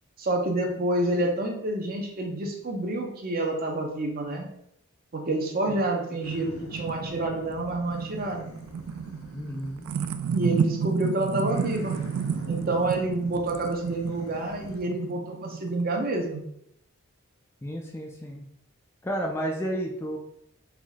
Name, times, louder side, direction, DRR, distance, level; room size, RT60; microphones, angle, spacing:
voice 1, 0.2-4.5 5.1-8.5 10.3-12.0 12.5-16.4, right 2 dB, 45° right, 1 dB, 0.7 m, -28 dB
sound 1, 6.1-16.2, right 6 dB, 80° right, 0.3 m, -32 dB
sound 2, 6.2-10.9 11.3-14.8, left 1 dB, 90° left, 0.7 m, -47 dB
voice 2, 9.3-9.8 17.6-18.5 19.0-20.2, equal, 10° left, 1 dB, 0.3 m, -32 dB
3.6 x 2.6 x 3.5 m, 0.75 s
head